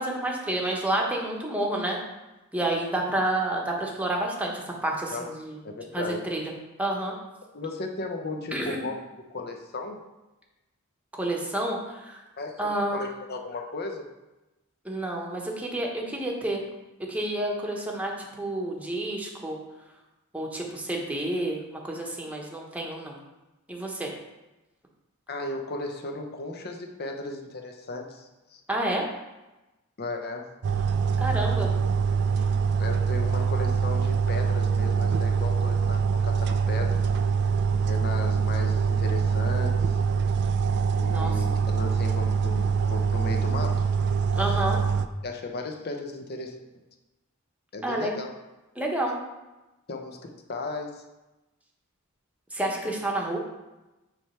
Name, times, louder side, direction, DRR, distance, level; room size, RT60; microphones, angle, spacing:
voice 1, 0.0-2.0 2.5-5.6 5.9-6.5 6.8-7.1 8.5-8.8 11.1-12.2 12.6-13.0 14.8-16.6 17.0-19.6 20.3-23.2 23.7-24.1 28.7-29.1 31.2-31.7 41.1-41.3 44.3-44.8 47.8-48.2 48.8-49.2 52.5-53.4, right 1 dB, 5° right, -1 dB, 1.0 m, -29 dB
voice 2, 5.6-6.2 7.5-10.0 12.4-14.1 25.3-28.6 30.0-30.5 32.8-37.0 37.8-40.0 40.9-43.9 44.5-44.6 45.2-46.6 47.7-48.3 49.9-51.0, left 2 dB, 50° left, 3 dB, 0.8 m, -35 dB
sound 1, 30.6-45.1, right 6 dB, 50° right, 0.3 m, -24 dB
6.2 x 3.4 x 5.6 m, 1.0 s
head